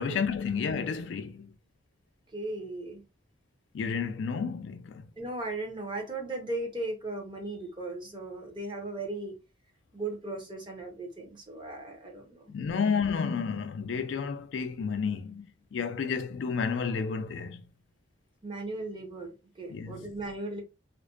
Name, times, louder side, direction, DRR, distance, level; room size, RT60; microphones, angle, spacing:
voice 1, 0.0-1.5 3.7-5.0 12.5-17.6 19.7-20.1, left 6 dB, 70° left, 0.3 m, -31 dB
voice 2, 2.3-3.0 5.2-9.4 9.9-12.5 18.4-20.6, right 2 dB, 25° right, 0.7 m, -37 dB
2.5 x 2.1 x 2.3 m
head